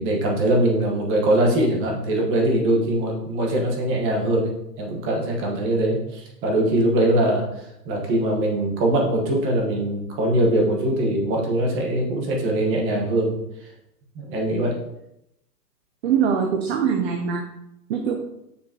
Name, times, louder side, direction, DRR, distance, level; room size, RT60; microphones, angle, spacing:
voice 1, 0.0-4.5 4.8-7.4 7.8-13.3 14.1-14.8, right 1 dB, 25° right, 0 dB, 1.4 m, -22 dB
voice 2, 16.0-17.4 17.9-18.2, right 7 dB, 40° right, 4 dB, 0.7 m, -22 dB
7.0 x 4.7 x 3.0 m, 0.82 s
hypercardioid pair, 145°, 49 cm